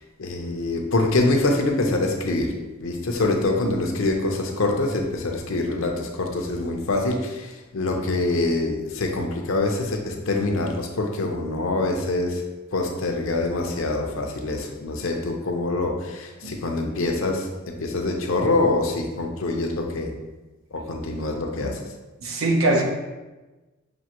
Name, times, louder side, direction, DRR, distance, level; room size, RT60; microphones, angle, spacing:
voice 1, 0.2-2.5 2.8-12.4 12.7-20.1 20.7-21.9, left 2 dB, 70° left, 3 dB, 0.6 m, -25 dB
voice 2, 22.2-22.8, right 2 dB, 85° right, 2 dB, 0.7 m, -21 dB
6.1 x 2.6 x 2.9 m, 1.1 s
head